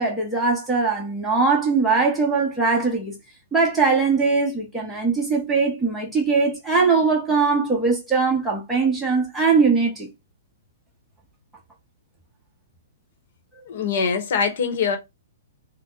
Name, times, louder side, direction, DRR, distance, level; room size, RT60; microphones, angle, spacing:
voice 1, 0.0-3.2 3.5-10.1, right 4 dB, 5° right, 0.8 m, -21 dB
voice 2, 13.7-15.0, left 6 dB, 50° left, 0.9 m, -23 dB
2.8 x 2.1 x 3.6 m
hypercardioid pair, 165°, 0 cm